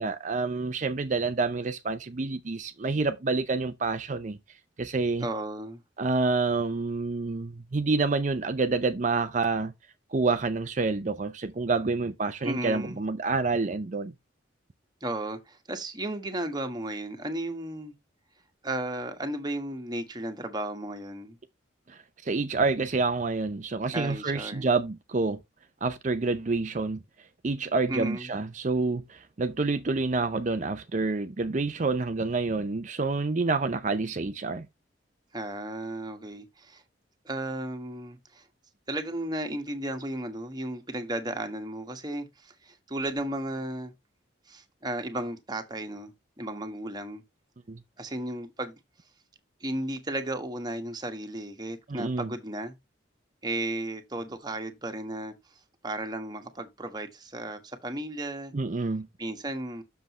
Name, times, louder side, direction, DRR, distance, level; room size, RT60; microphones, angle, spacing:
voice 1, 0.0-4.4 4.8-5.3 6.0-9.7 10.1-14.1 21.9-25.4 25.8-27.0 27.4-34.7 47.7-47.8 51.9-52.3 58.5-59.1, right 3 dB, 40° right, 0.5 m, -28 dB
voice 2, 5.2-5.8 12.4-13.0 15.0-17.9 18.6-21.4 23.9-24.7 27.9-28.3 35.3-36.8 37.2-38.5 38.9-43.9 44.5-47.2 48.0-48.7 49.6-52.7 53.4-55.3 55.8-58.5 59.2-59.8, right 1 dB, 20° right, 1.4 m, -34 dB
7.6 x 6.8 x 3.0 m
head